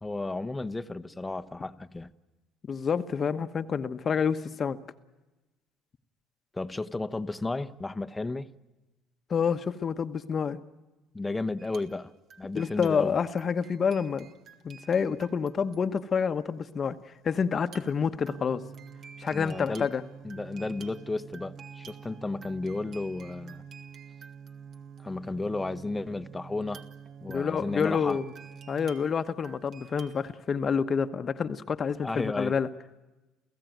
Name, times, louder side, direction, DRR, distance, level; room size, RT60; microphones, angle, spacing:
voice 1, 0.0-2.1 6.5-8.5 11.1-12.1 12.4-13.1 19.3-19.9 20.2-23.6 25.0-26.8 27.2-28.2 32.0-32.5, left 2 dB, 15° left, 11 dB, 1.0 m, -33 dB
voice 2, 2.7-4.8 9.3-10.6 12.5-14.3 14.6-18.6 19.2-20.0 27.3-28.3 28.7-32.7, left 6 dB, 35° left, 10 dB, 1.1 m, -28 dB
sound 1, 11.6-16.3 17.6-25.5 26.6-30.4, right 6 dB, 55° right, 2.1 m, -53 dB
sound 2, 18.3-28.9, right 7 dB, 35° right, 1.3 m, -47 dB
29.0 x 16.0 x 9.3 m, 1.1 s
supercardioid pair, 100°, 0 cm